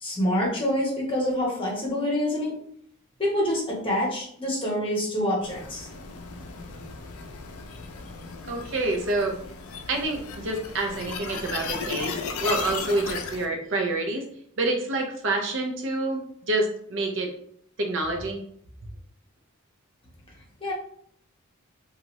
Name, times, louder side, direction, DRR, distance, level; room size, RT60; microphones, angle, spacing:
voice 1, 0.0-2.5 3.2-5.9 20.6-20.7, left 1 dB, 25° left, -3 dB, 0.9 m, -26 dB
sound 1, 5.4-13.5, left 5 dB, 90° left, 0.4 m, -36 dB
voice 2, 8.5-9.4 9.9-14.3 14.6-16.2 16.5-17.3 17.8-18.4, right 2 dB, 65° right, 2 dB, 0.6 m, -27 dB
2.8 x 2.4 x 3.0 m, 0.65 s
head